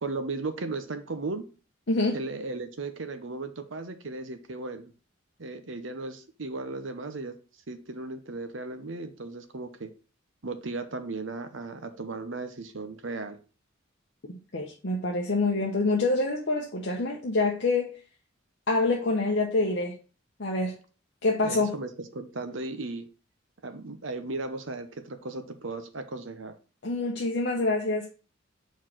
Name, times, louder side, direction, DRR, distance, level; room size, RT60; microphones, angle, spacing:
voice 1, 0.0-1.4 2.1-4.9 5.4-7.4 7.7-9.9 10.4-13.4 21.4-23.1 23.6-26.5, right 3 dB, 75° right, 0.9 m, -36 dB
voice 2, 1.9-2.2 14.5-18.0 18.7-20.0 20.4-20.8 21.2-21.8 26.8-28.1, left 2 dB, 60° left, 0.9 m, -26 dB
4.6 x 4.6 x 6.0 m
head